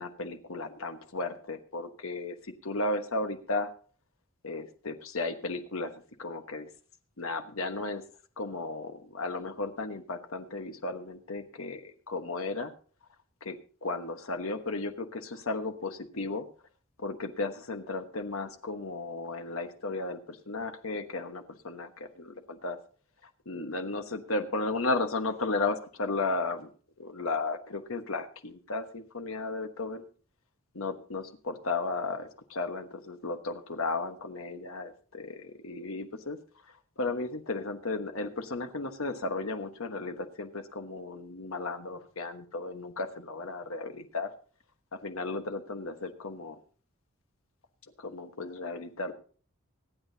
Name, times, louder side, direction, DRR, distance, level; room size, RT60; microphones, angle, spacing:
voice 1, 0.0-3.7 4.4-6.7 7.2-8.0 8.4-12.7 13.4-16.5 17.0-22.8 23.4-26.7 27.0-30.0 30.7-36.4 37.0-44.3 44.9-46.6 48.0-49.1, left 3 dB, 70° left, 8 dB, 1.2 m, -34 dB
25.0 x 8.8 x 2.8 m, 0.41 s
head